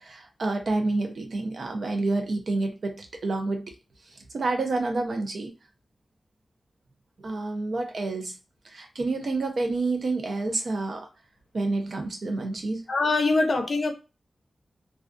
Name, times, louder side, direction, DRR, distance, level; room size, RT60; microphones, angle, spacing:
voice 1, 0.0-3.7 4.1-5.5 7.2-8.4 8.6-11.1 11.5-12.8, right 2 dB, 60° right, 0.6 m, -29 dB
voice 2, 12.9-13.9, left 3 dB, 60° left, 0.5 m, -23 dB
2.3 x 2.3 x 2.5 m
wide cardioid pair, 130°, 0 cm